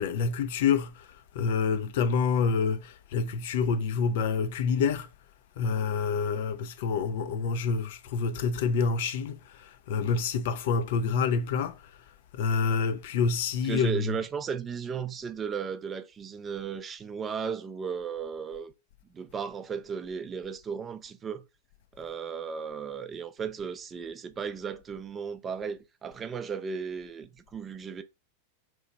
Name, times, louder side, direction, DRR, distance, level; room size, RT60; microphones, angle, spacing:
voice 1, 0.0-5.1 5.6-11.9 12.3-14.2, left 5 dB, 55° left, 0.4 m, -27 dB
voice 2, 13.6-18.7 19.1-21.4 21.9-28.0, right 6 dB, 20° right, 0.4 m, -35 dB
3.0 x 2.3 x 4.1 m
figure-of-eight pair, 90°, 0 cm